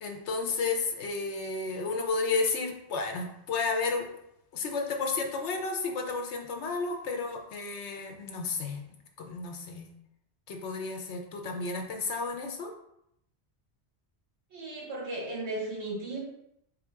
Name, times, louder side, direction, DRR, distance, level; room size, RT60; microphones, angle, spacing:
voice 1, 0.0-4.1 4.5-8.8 9.2-9.9 10.5-12.7, left 4 dB, 85° left, 3 dB, 1.0 m, -32 dB
voice 2, 14.5-16.2, right 2 dB, 75° right, -5 dB, 1.4 m, -35 dB
3.6 x 2.5 x 4.6 m, 0.77 s
omnidirectional pair, 1.1 m